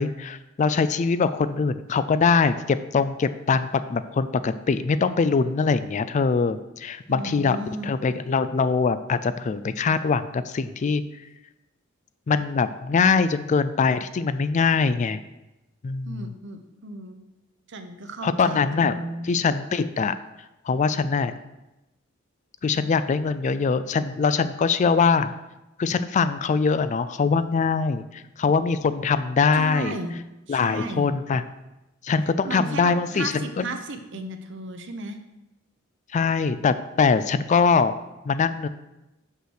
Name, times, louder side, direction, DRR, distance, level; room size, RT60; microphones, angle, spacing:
voice 1, 0.0-7.6 7.8-11.0 12.3-15.2 15.8-16.3 18.2-18.9 19.2-20.2 20.7-21.3 22.6-25.3 25.8-30.0 30.5-31.4 32.0-33.7 36.1-37.9 38.3-38.7, left 5 dB, 35° left, 13 dB, 0.3 m, -23 dB
voice 2, 7.1-7.9 16.0-17.2 17.7-19.3 29.5-30.2 30.5-31.1 32.4-35.2, right 2 dB, 65° right, 7 dB, 0.8 m, -34 dB
5.9 x 5.5 x 6.4 m, 0.97 s
head